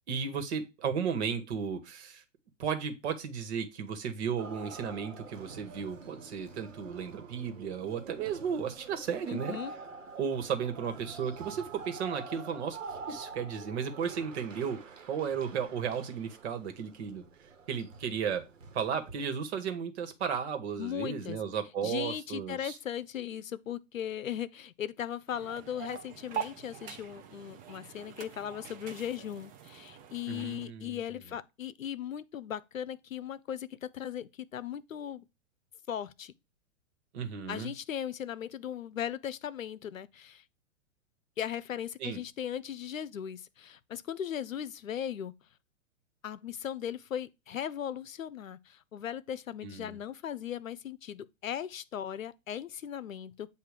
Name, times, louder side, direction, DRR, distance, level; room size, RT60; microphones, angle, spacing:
voice 1, 0.1-2.2 2.6-9.6 10.1-12.8 13.1-14.8 15.1-17.2 17.7-18.4 18.7-22.8 30.3-31.0 37.1-37.7 42.0-42.2 49.6-50.0, right 7 dB, 55° right, 1.4 m, -34 dB
sound 1, 4.4-19.3, right 4 dB, 75° right, 1.3 m, -47 dB
voice 2, 9.3-9.7 20.8-21.4 21.8-35.3 35.9-36.3 37.5-40.4 41.4-45.3 46.2-53.5, left 9 dB, 90° left, 0.6 m, -38 dB
sound 2, 25.3-30.7, right 9 dB, 20° right, 0.6 m, -43 dB
8.0 x 2.7 x 4.9 m
hypercardioid pair, 115°, 39 cm